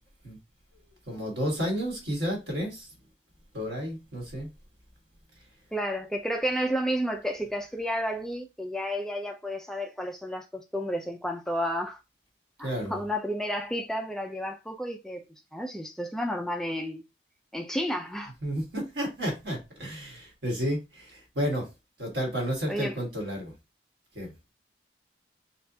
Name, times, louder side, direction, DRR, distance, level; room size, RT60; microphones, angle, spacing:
voice 1, 1.1-2.9 3.5-4.5 12.6-13.0 18.4-21.7 22.0-23.5 24.1-24.3, equal, 85° right, 1.6 m, -31 dB
voice 2, 5.7-12.0 12.6-15.2 15.5-17.0 17.5-18.3 22.7-23.0, equal, 5° left, 0.4 m, -31 dB
4.3 x 2.4 x 2.7 m
head